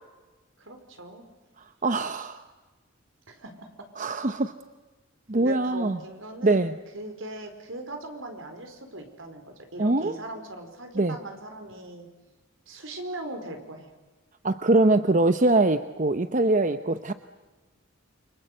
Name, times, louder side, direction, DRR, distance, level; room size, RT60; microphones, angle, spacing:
voice 1, 0.6-1.3 3.3-3.9 5.3-12.1 12.7-13.9, right 1 dB, 70° right, 6 dB, 4.6 m, -40 dB
voice 2, 1.8-2.4 4.0-4.5 5.3-6.0 6.4-6.7 9.8-10.1 11.0-11.2 14.4-17.1, right 2 dB, 40° right, 10 dB, 0.8 m, -23 dB
28.5 x 25.0 x 8.0 m, 1.2 s
head